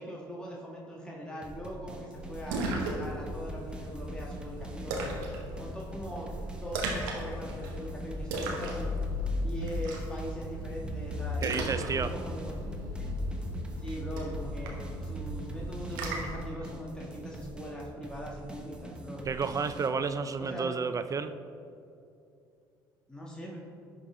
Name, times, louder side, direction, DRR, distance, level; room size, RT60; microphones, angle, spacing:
voice 1, 0.0-5.1 5.6-8.9 9.4-11.7 12.0-13.1 13.8-14.7 15.0-19.2 20.4-20.8 23.1-23.6, equal, 10° left, -4 dB, 1.5 m, -41 dB
sound 1, 1.4-19.9, right 1 dB, 10° right, 1.0 m, -45 dB
Splash splatter, 2.1-16.4, equal, 85° right, 1.0 m, -36 dB
voice 2, 11.4-12.1 19.3-21.3, right 5 dB, 35° right, 11 dB, 0.4 m, -31 dB
11.0 x 3.9 x 3.7 m, 2.6 s
hypercardioid pair, 65°, 10 cm